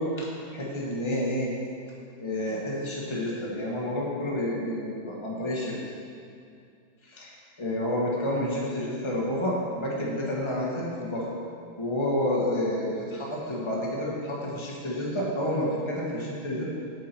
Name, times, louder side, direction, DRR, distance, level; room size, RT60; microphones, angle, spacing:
voice 1, 0.0-1.5 2.2-5.8 7.0-11.2 11.8-16.6, left 1 dB, 15° left, -4 dB, 1.3 m, -29 dB
8.4 x 7.5 x 4.4 m, 2.4 s
omnidirectional pair, 2.1 m